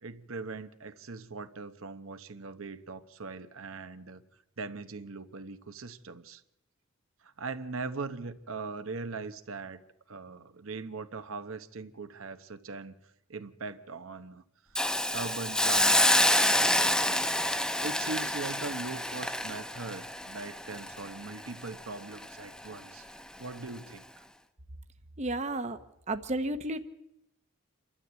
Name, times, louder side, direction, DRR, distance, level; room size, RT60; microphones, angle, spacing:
voice 1, 0.0-4.2 4.6-6.4 7.2-9.8 10.1-13.0 13.3-14.4 15.1-17.2 17.8-23.0 23.4-24.2, right 3 dB, 75° right, 1.0 m, -40 dB
Hiss, 14.8-21.8 22.2-22.3, left 1 dB, 5° left, 0.8 m, -27 dB
voice 2, 25.2-25.8 26.1-26.9, right 2 dB, 35° right, 0.9 m, -32 dB
27.5 x 12.5 x 8.2 m
head